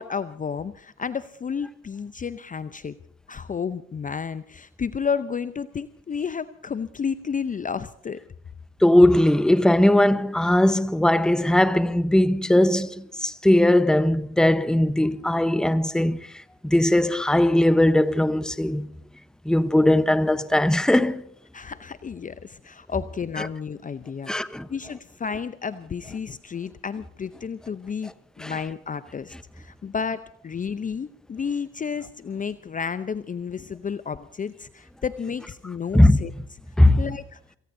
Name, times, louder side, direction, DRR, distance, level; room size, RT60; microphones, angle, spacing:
voice 1, 0.0-2.9 3.3-8.2 21.5-28.1 28.4-36.3 37.0-37.4, left 6 dB, 25° left, 0.7 m, -31 dB
voice 2, 8.8-16.2 16.6-18.9 19.4-21.2 23.4-23.5 24.3-24.7 28.4-28.6 35.9-36.2 36.8-37.0, left 1 dB, ahead, 0.9 m, -19 dB
28.0 x 18.5 x 2.7 m
hypercardioid pair, 60°, 29 cm